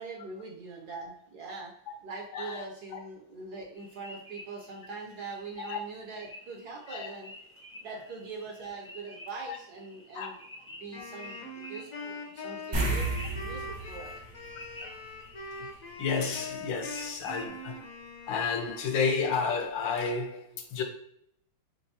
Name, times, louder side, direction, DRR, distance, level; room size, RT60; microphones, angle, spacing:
voice 1, 0.0-1.7 2.0-7.3 7.8-10.4 10.7-14.2, right 4 dB, 65° right, 1.1 m, -42 dB
voice 2, 2.3-2.6 2.9-3.0 5.6-5.8 6.9-7.1 9.5-9.6 10.1-10.3 14.8-15.0 15.6-15.7 16.0-17.8 18.3-20.8, left 5 dB, 75° left, 1.4 m, -31 dB
sound 1, 3.7-17.5, left 1 dB, 15° left, 0.5 m, -50 dB
Wind instrument woodwind instrument, 10.9-19.3, left 2 dB, 60° left, 0.9 m, -43 dB
sound 2, 12.7-15.5 15.8-16.0 18.9-19.0 19.3-19.4, right 2 dB, 80° right, 0.4 m, -33 dB
4.5 x 3.6 x 2.8 m
omnidirectional pair, 2.2 m